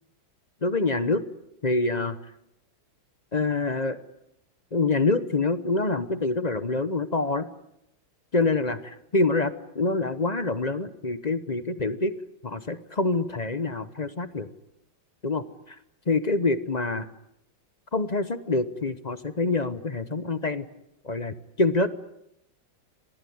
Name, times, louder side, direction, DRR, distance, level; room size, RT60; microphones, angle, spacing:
voice 1, 0.6-1.2 1.6-2.2 3.3-4.0 4.7-7.5 8.3-12.1 12.4-14.5 15.2-15.8 16.1-17.1 17.9-20.6 21.0-21.9, left 3 dB, 30° left, 13 dB, 0.8 m, -26 dB
26.0 x 20.0 x 9.5 m, 0.80 s
omnidirectional pair, 2.1 m